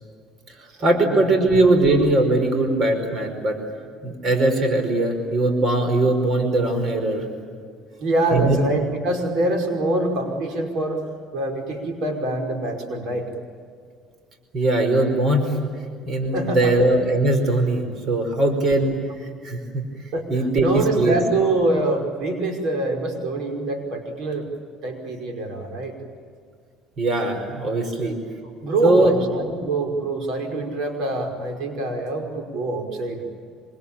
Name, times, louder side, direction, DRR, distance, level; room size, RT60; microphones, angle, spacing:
voice 1, 0.5-3.6 4.0-7.3 8.3-8.6 14.5-15.7 16.0-21.2 27.0-28.1 28.8-29.2, right 2 dB, 45° right, 6 dB, 5.1 m, -20 dB
voice 2, 8.0-11.0 11.3-13.3 16.3-16.7 20.1-20.3 20.6-24.5 24.8-26.0 27.9-28.1 28.6-33.2, right 2 dB, 65° right, 4 dB, 5.2 m, -25 dB
26.0 x 25.5 x 8.9 m, 2.2 s
cardioid pair, 115°, 0 cm